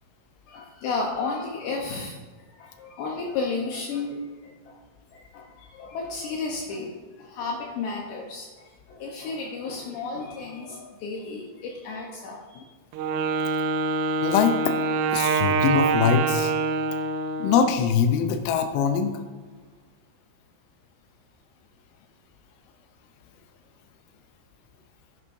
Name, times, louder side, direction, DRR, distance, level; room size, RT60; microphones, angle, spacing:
voice 1, 0.5-4.8 5.1-12.6, left 4 dB, 75° left, -1 dB, 2.9 m, -33 dB
Wind instrument woodwind instrument, 12.9-17.8, right 4 dB, 85° right, 2.4 m, -25 dB
voice 2, 14.2-14.7 15.1-16.5 17.4-19.2, left 6 dB, 90° left, 7 dB, 3.2 m, -22 dB
10.5 x 9.6 x 2.6 m, 1.4 s
omnidirectional pair, 5.5 m